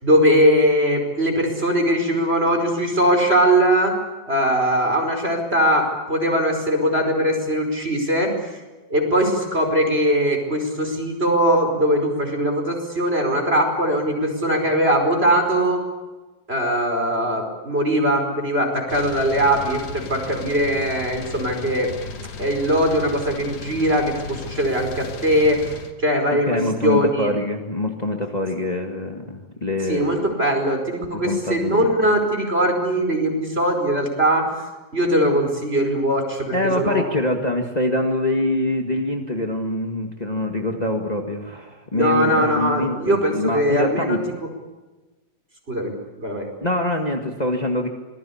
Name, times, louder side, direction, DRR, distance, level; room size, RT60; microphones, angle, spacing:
voice 1, 0.0-4.0 4.2-8.6 8.9-15.8 16.5-21.9 22.4-25.7 26.0-27.3 29.9-34.5 34.9-37.1 41.9-44.5 45.7-46.5, equal, 15° right, 3 dB, 4.9 m, -20 dB
sound 1, 18.9-25.9, left 4 dB, 55° left, 3.1 m, -35 dB
voice 2, 26.3-30.1 31.1-32.1 36.5-44.2 46.6-47.9, left 1 dB, 35° left, 3 dB, 0.6 m, -24 dB
26.0 x 20.0 x 8.6 m, 1.2 s
omnidirectional pair, 4.1 m